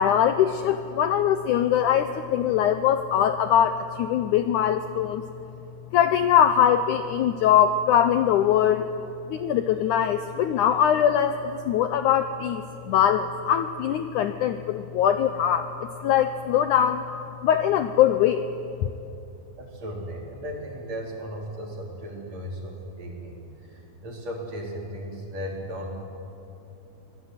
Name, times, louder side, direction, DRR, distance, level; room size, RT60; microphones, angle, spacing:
voice 1, 0.0-5.2 5.9-8.9 9.3-15.7 16.0-17.0 17.4-18.4, left 9 dB, 85° left, 9 dB, 1.7 m, -22 dB
voice 2, 19.6-23.4 23.7-26.0, equal, 45° right, -1 dB, 4.9 m, -36 dB
26.0 x 19.5 x 9.6 m, 2.7 s
omnidirectional pair, 4.5 m